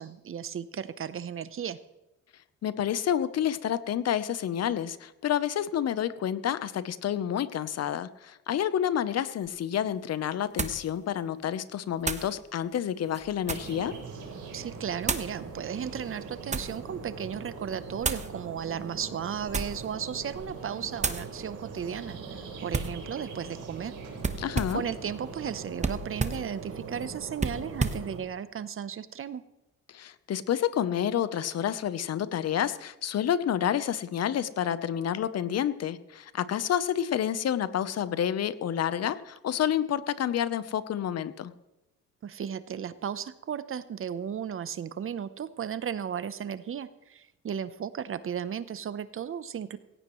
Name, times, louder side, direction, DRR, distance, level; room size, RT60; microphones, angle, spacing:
voice 1, 0.0-1.8 14.5-22.2 22.6-23.9 24.7-29.4 42.2-49.8, right 8 dB, 45° right, 14 dB, 0.8 m, -35 dB
voice 2, 2.6-13.9 24.4-24.8 29.9-41.5, left 10 dB, 55° left, 15 dB, 0.8 m, -29 dB
sound 1, 9.4-9.5 10.6-10.9 12.0-12.3 13.0-13.8 15.0-15.3 16.1-16.8 18.0-18.3 19.4-19.9 20.3-20.6 21.0-21.3 22.7-23.0 24.2-24.9 25.8-26.5 27.4-28.1, right 4 dB, 25° right, 1.1 m, -31 dB
sound 2, 13.5-28.2, right 4 dB, 80° right, 3.6 m, -42 dB
17.5 x 16.0 x 3.1 m, 1.0 s
cardioid pair, 90°, 30 cm